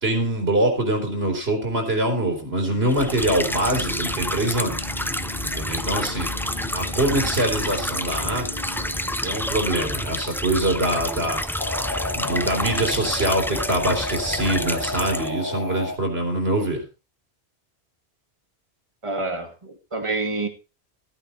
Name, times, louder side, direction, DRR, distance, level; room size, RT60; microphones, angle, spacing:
voice 1, 0.0-4.8 5.4-6.3 6.7-8.7 9.2-11.4 12.1-16.8, right 1 dB, 65° right, 4 dB, 4.1 m, -24 dB
sound 1, 2.6-9.4 11.6-16.0, left 2 dB, 45° left, 1.7 m, -34 dB
sound 2, 2.9-15.3, equal, 5° left, 0.3 m, -29 dB
voice 2, 19.0-20.5, right 3 dB, 30° right, 6 dB, 2.0 m, -27 dB
14.0 x 8.9 x 4.3 m, 0.30 s
omnidirectional pair, 1.1 m